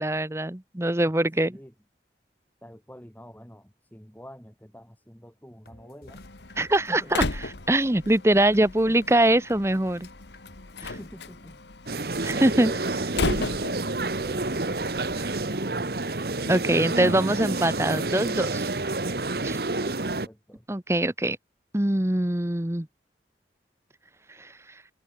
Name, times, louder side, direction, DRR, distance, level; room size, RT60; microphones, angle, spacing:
voice 1, 0.0-1.6 6.6-7.2 7.7-10.1 12.2-12.7 16.5-18.6 19.4-19.6 20.7-21.4 21.7-22.9, right 1 dB, 15° right, 0.9 m, -23 dB
voice 2, 1.4-1.7 2.6-6.2 6.7-7.3 8.9-9.0 10.8-11.6 12.3-12.8 15.5-16.0 19.7-20.7, equal, 10° left, 3.7 m, -47 dB
sound 1, 5.6-13.6, left 1 dB, 60° left, 7.1 m, -54 dB
Slam, 6.1-15.5, left 3 dB, 80° left, 1.6 m, -36 dB
sound 2, 11.9-20.3, right 2 dB, 60° right, 1.4 m, -29 dB
head